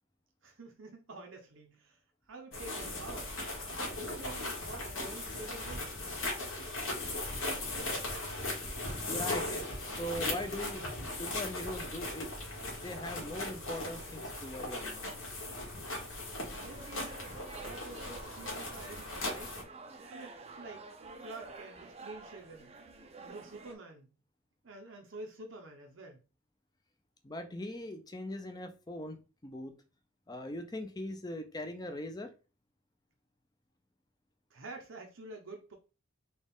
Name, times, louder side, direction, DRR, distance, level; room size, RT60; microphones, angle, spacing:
voice 1, 0.4-2.0 2.3-3.3 3.9-5.9 16.5-19.6 20.1-20.8 21.2-22.7 23.2-24.1 24.6-26.2 34.5-35.7, right 2 dB, 65° right, 0.8 m, -48 dB
sound 1, 2.5-19.6, left 2 dB, 80° left, 1.6 m, -38 dB
voice 2, 9.1-10.8 11.1-12.3 12.8-15.0 27.2-29.2 29.4-29.7 30.3-32.3, left 1 dB, 20° left, 0.5 m, -40 dB
sound 2, 16.6-23.7, right 3 dB, 30° right, 0.6 m, -50 dB
4.2 x 2.4 x 3.5 m
head